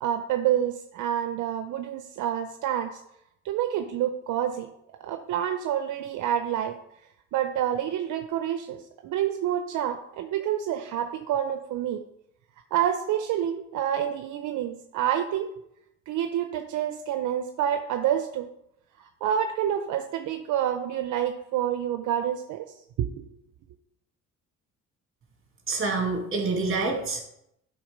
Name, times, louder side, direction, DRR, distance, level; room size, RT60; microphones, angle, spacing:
voice 1, 0.0-3.0 3.4-4.7 5.0-6.8 7.3-12.0 12.7-15.5 16.1-18.5 19.0-23.1, right 10 dB, 80° right, 7 dB, 0.6 m, -28 dB
voice 2, 25.7-27.2, right 3 dB, 45° right, 1 dB, 2.3 m, -27 dB
9.4 x 3.8 x 5.1 m, 0.79 s
cardioid pair, 90°, 30 cm